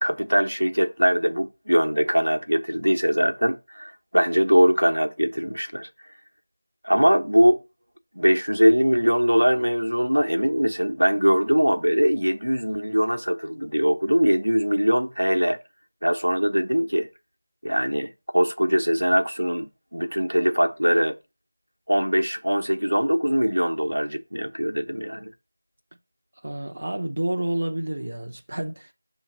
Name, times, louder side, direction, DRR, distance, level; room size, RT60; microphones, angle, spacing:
voice 1, 0.0-5.9 6.8-7.6 8.1-15.6 16.0-17.1 17.6-21.2 21.9-25.3, equal, 85° right, 1.0 m, -22 dB
voice 2, 26.4-28.9, right 1 dB, 50° right, 0.7 m, -29 dB
6.6 x 3.1 x 5.2 m
figure-of-eight pair, 170°, 0 cm